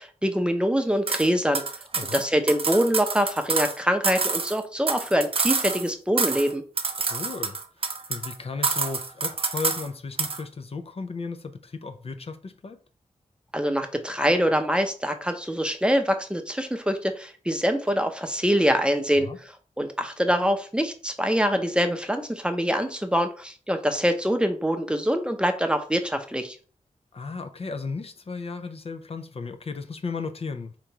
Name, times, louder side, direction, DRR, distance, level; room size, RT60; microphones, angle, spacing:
voice 1, 0.0-1.6 2.1-6.6 13.5-19.3 19.8-26.6, equal, 5° right, 0.7 m, -24 dB
sound 1, 1.1-1.3 1.5-3.8 4.0-5.9 6.2-6.5 6.8-8.3 8.6-9.9 10.2-10.4, right 4 dB, 45° right, 0.6 m, -27 dB
voice 2, 1.9-2.2 7.0-7.6 8.1-12.8 19.1-19.4 27.1-30.8, left 4 dB, 50° left, 0.5 m, -35 dB
3.8 x 3.0 x 4.5 m
wide cardioid pair, 75°, 13 cm